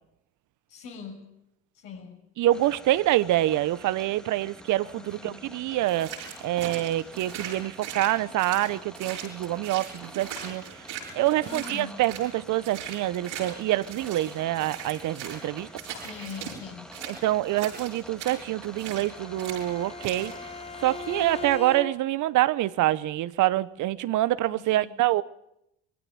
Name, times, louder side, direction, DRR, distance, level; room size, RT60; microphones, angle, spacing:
voice 1, 0.7-1.3 1.7-2.2 4.8-5.4 11.4-12.0 15.8-16.9 24.4-24.9, left 5 dB, 75° left, 6.5 m, -42 dB
voice 2, 2.4-10.9 11.1-15.7 17.1-20.3 20.8-25.2, right 15 dB, 65° right, 0.9 m, -26 dB
sound 1, 2.5-21.6, equal, ahead, 1.9 m, -47 dB
sound 2, 5.8-12.3 12.6-16.6 16.9-19.1 19.4-19.7 20.0-20.3, right 8 dB, 90° right, 6.8 m, -39 dB
Bowed string instrument, 18.9-22.3, left 3 dB, 20° left, 0.8 m, -40 dB
21.0 x 16.0 x 10.0 m
hypercardioid pair, 60°, 33 cm